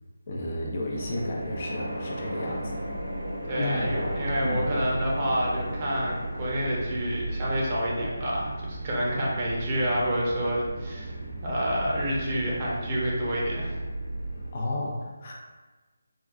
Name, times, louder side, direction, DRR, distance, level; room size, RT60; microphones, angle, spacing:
voice 1, 0.3-2.8 3.6-4.0 4.4-4.7 14.5-15.3, left 1 dB, 40° left, -3 dB, 0.5 m, -32 dB
sound 1, 0.9-14.5, right 1 dB, 80° right, 1.2 m, -34 dB
voice 2, 3.5-11.2 11.4-13.8, equal, 30° right, -5 dB, 0.7 m, -28 dB
3.4 x 2.3 x 2.4 m, 1.2 s
figure-of-eight pair, 165°, 0 cm